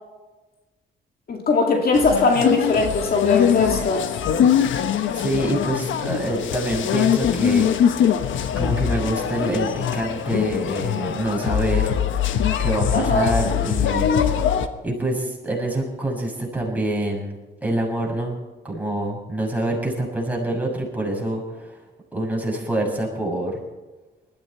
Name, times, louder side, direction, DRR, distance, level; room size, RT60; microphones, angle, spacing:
voice 1, 1.3-4.1 12.9-13.3, left 4 dB, 50° left, 2 dB, 2.2 m, -20 dB
sound 1, 1.9-14.7, left 8 dB, 75° left, 1.2 m, -22 dB
voice 2, 5.2-8.1 8.6-12.0 12.6-14.4 14.8-18.3 18.6-21.8 22.1-23.6, right 1 dB, 10° right, -2 dB, 6.9 m, -26 dB
20.5 x 14.5 x 4.4 m, 1.2 s
cardioid pair, 90°, 20 cm